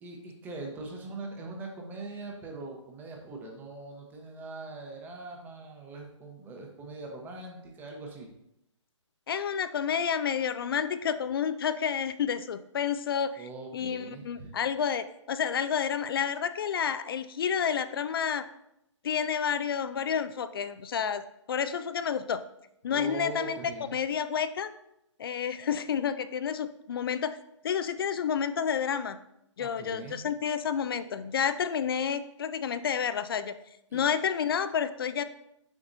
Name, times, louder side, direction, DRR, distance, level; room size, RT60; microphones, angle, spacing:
voice 1, 0.0-8.3 13.4-14.5 22.9-24.0 29.6-30.2 33.9-34.0, right 2 dB, 10° right, 1 dB, 0.9 m, -42 dB
voice 2, 9.3-13.5 13.7-18.4 19.0-21.2 21.5-22.4 22.8-23.6 23.9-24.7 25.2-27.4 27.6-29.2 29.6-33.5 33.9-35.2, left 7 dB, 45° left, 12 dB, 0.4 m, -30 dB
7.1 x 5.8 x 2.6 m, 0.80 s
figure-of-eight pair, 140°, 16 cm